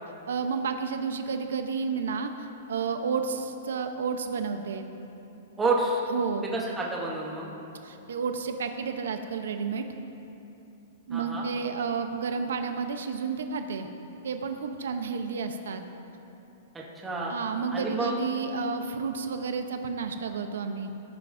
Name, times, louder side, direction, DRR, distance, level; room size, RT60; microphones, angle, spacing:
voice 1, 0.3-4.9 6.1-6.5 7.8-9.9 11.1-13.9 14.2-15.8 17.3-20.9, right 5 dB, 80° right, 7 dB, 0.7 m, -31 dB
voice 2, 5.6-6.0 6.5-7.5 11.1-11.5 16.7-17.3 17.7-18.2, right 2 dB, 10° right, -3 dB, 0.9 m, -29 dB
17.5 x 9.1 x 2.6 m, 3.0 s
supercardioid pair, 180°, 0 cm